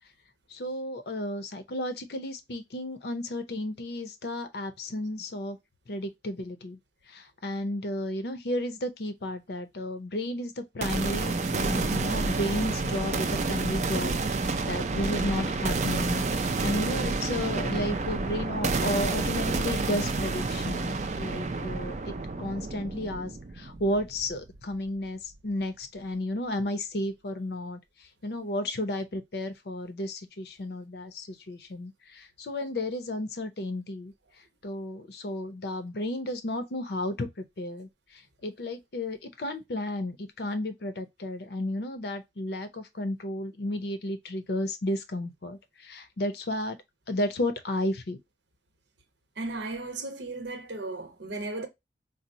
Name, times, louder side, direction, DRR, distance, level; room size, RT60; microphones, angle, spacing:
voice 1, 0.5-5.6 5.9-6.8 7.1-34.1 34.6-46.8 47.1-48.2, left 1 dB, 60° left, 0.6 m, -33 dB
sound 1, 10.8-24.7, right 3 dB, 40° right, 0.4 m, -29 dB
voice 2, 49.4-51.7, right 2 dB, 90° right, 0.9 m, -35 dB
4.0 x 2.0 x 2.6 m
head